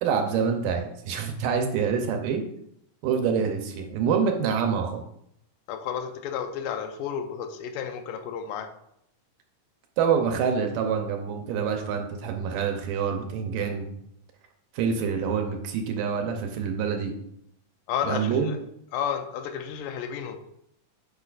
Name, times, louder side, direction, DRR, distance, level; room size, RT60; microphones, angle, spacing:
voice 1, 0.0-2.4 3.0-5.0 10.0-13.9 14.7-17.1 18.0-18.6, right 6 dB, 75° right, 4 dB, 2.2 m, -26 dB
voice 2, 5.7-8.7 17.9-18.6 18.9-20.4, left 8 dB, 75° left, 6 dB, 2.2 m, -32 dB
8.2 x 6.1 x 2.5 m, 0.75 s
omnidirectional pair, 4.2 m